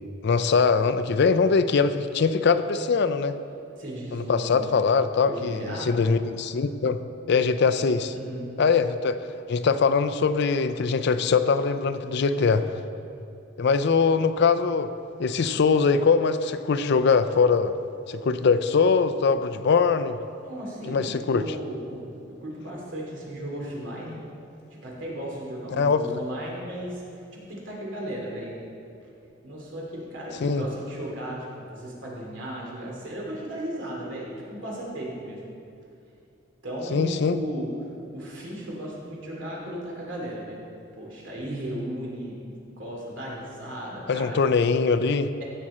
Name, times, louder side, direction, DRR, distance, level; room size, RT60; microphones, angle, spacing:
voice 1, 0.2-3.3 4.1-7.0 7.3-8.1 8.6-9.2 9.5-12.6 13.6-14.9 15.2-17.7 18.1-20.2 20.9-21.5 25.8-26.2 30.4-30.6 36.9-37.4 44.1-45.3, left 5 dB, 60° left, 12 dB, 0.4 m, -22 dB
voice 2, 3.8-4.8 5.2-5.9 8.1-8.5 20.4-24.2 24.7-27.0 27.3-28.6 29.4-35.4 36.6-37.7 38.1-40.6 40.9-42.4 42.8-44.4, right 1 dB, 70° right, -3 dB, 2.8 m, -35 dB
15.5 x 6.1 x 4.3 m, 2.7 s
head